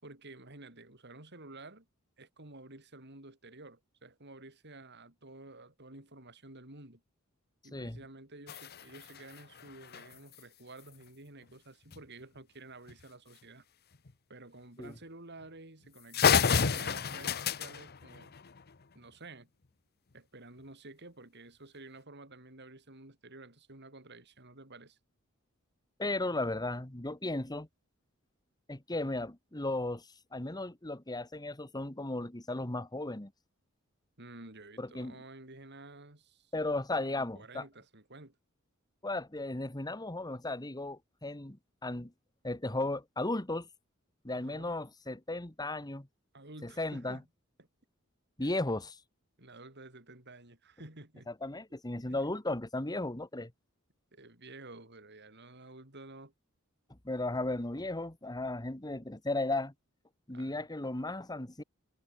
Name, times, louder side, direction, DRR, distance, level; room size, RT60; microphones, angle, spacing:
voice 1, 0.0-1.9 2.2-7.0 7.6-13.6 14.3-18.3 18.9-19.5 20.1-25.0 28.9-29.1 34.2-36.5 37.0-38.4 44.3-44.8 46.3-47.2 47.6-47.7 48.4-48.6 49.4-51.3 52.1-52.2 54.1-56.3 60.3-60.7, right 2 dB, 55° right, 6.8 m, -51 dB
sound 1, 8.5-10.4 11.9-12.0 12.4-12.5 12.9-13.0 13.9-14.1 14.8-15.0 15.4-15.5 15.8-15.9 16.1-18.8, left 6 dB, 50° left, 0.9 m, -31 dB
voice 2, 26.0-27.7 28.7-33.3 34.8-35.2 36.5-37.6 39.0-42.1 42.4-43.7 44.2-46.1 46.6-47.2 48.4-49.0 51.3-53.5 56.9-59.7 60.3-61.6, left 2 dB, 20° left, 1.6 m, -35 dB
head